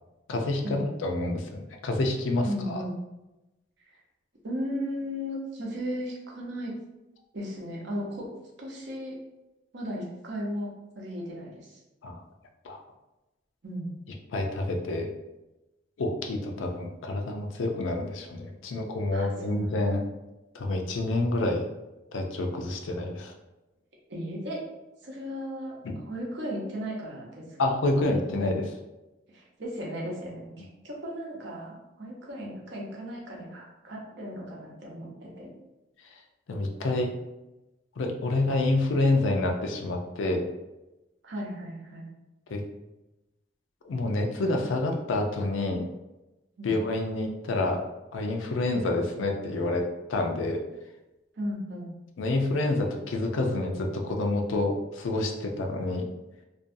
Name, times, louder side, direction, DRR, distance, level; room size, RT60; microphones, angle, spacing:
voice 1, 0.3-2.8 12.0-12.2 12.6-12.8 14.3-15.1 16.0-20.0 20.5-21.6 22.1-23.3 25.8-26.0 27.6-28.7 30.6-30.7 36.5-37.1 38.0-40.5 42.5-42.6 43.8-45.8 46.6-47.8 48.1-50.6 52.2-56.1, left 2 dB, 80° left, 3 dB, 0.4 m, -28 dB
voice 2, 2.4-3.0 4.4-6.8 7.3-8.3 8.6-9.2 9.7-11.8 13.6-14.0 19.1-19.7 24.1-24.6 25.0-25.8 26.0-27.4 29.3-35.5 41.2-42.1 46.6-46.7 51.4-51.9, equal, 65° right, -2 dB, 0.7 m, -36 dB
2.5 x 2.2 x 2.5 m, 1.0 s
head